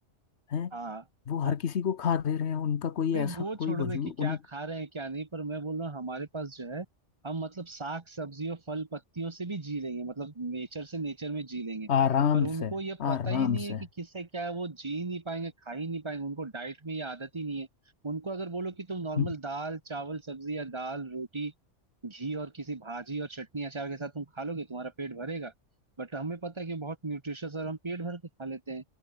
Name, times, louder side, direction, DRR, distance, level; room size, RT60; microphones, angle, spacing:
voice 1, 0.7-1.0 1.4-1.6 3.1-6.9 7.2-11.9 12.3-17.7 18.0-21.5 22.0-25.5 26.0-28.8, right 3 dB, 25° right, 1.3 m, -36 dB
voice 2, 1.3-4.4 11.9-12.7 13.0-13.8 19.2-19.3, left 7 dB, 65° left, 1.3 m, -28 dB
omnidirectional pair, 1.3 m